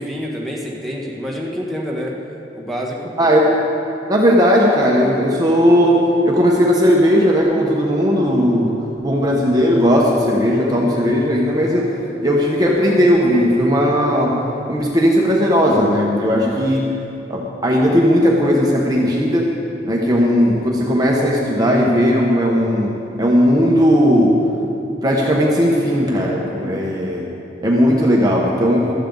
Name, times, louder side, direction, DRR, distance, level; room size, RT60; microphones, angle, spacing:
voice 1, 0.0-2.1 2.5-3.1, equal, ahead, -3 dB, 1.5 m, -27 dB
voice 2, 3.2-3.6 4.1-14.4 14.7-16.9 17.3-19.5 19.8-24.4 25.0-27.3 27.6-28.9, equal, 20° right, -2 dB, 1.2 m, -16 dB
16.0 x 13.5 x 3.9 m, 2.8 s
head